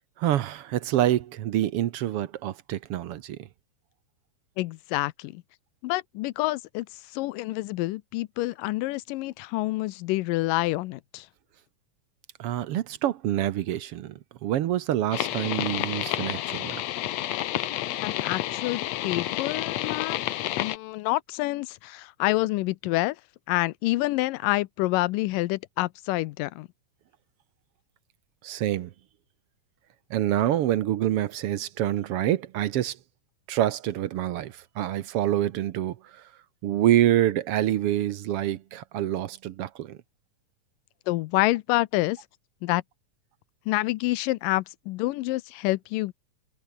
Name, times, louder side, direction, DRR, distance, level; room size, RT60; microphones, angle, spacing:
voice 1, 0.2-3.4 12.4-16.8 28.4-28.9 30.1-33.0 33.5-36.2 36.6-40.0, right 12 dB, 75° right, 1.3 m, -26 dB
voice 2, 4.6-5.4 5.8-6.9 7.1-11.3 18.0-20.2 20.6-23.2 23.5-26.7 41.1-42.2 42.6-42.8 43.7-46.1, left 19 dB, 90° left, 2.3 m, -27 dB
sound 1, 15.1-20.8, left 14 dB, 70° left, 1.7 m, -30 dB
omnidirectional pair, 3.9 m